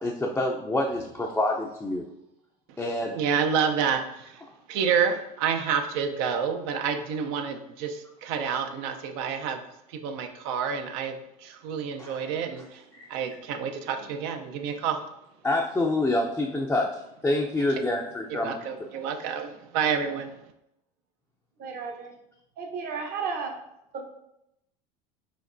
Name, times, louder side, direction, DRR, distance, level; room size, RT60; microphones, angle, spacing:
voice 1, 0.0-2.0 2.8-3.2 12.0-12.3 12.9-13.1 15.4-18.6, left 2 dB, 10° left, -2 dB, 0.4 m, -27 dB
voice 2, 3.1-4.4 4.7-9.6 9.9-12.8 13.1-15.1 17.7-17.8 18.3-20.3, right 7 dB, 65° right, 6 dB, 0.5 m, -29 dB
voice 3, 21.6-22.1 22.6-23.6 23.9-24.0, right 5 dB, 50° right, 3 dB, 0.9 m, -33 dB
5.1 x 2.8 x 2.5 m, 0.83 s
hypercardioid pair, 85°, 20 cm